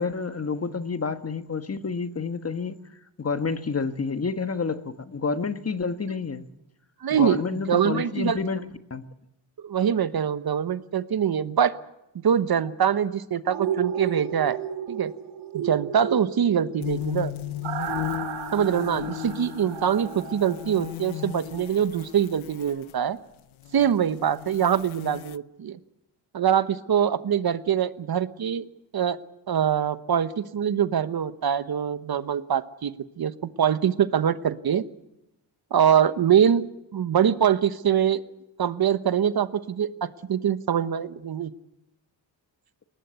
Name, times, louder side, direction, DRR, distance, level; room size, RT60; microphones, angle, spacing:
voice 1, 0.0-2.8 3.2-6.4 7.2-9.1, left 5 dB, 30° left, 1.4 m, -29 dB
voice 2, 7.0-8.4 9.6-11.7 12.2-14.6 14.9-15.1 15.5-17.3 18.5-23.2 23.7-25.8 26.3-28.6 28.9-29.2 29.5-32.9 33.2-33.3 33.6-34.8 35.7-36.6 36.9-38.2 38.6-39.9 40.3-41.5, right 8 dB, 50° right, 1.2 m, -23 dB
sound 1, 13.5-21.4 21.7-21.8, right 8 dB, 85° right, 3.6 m, -33 dB
sound 2, 16.8-22.9 23.5-25.4, left 16 dB, 85° left, 0.8 m, -35 dB
21.5 x 19.5 x 8.3 m
cardioid pair, 95°, 47 cm